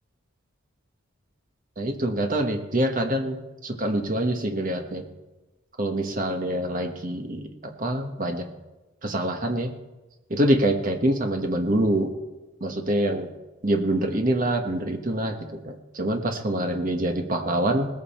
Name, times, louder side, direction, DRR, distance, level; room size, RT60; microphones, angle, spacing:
voice 1, 1.8-3.4 3.6-5.1 5.8-8.5 9.0-9.7 10.3-12.1 12.6-13.3 13.6-17.9, right 1 dB, 40° right, 4 dB, 1.2 m, -25 dB
19.5 x 8.7 x 4.3 m, 1.1 s
head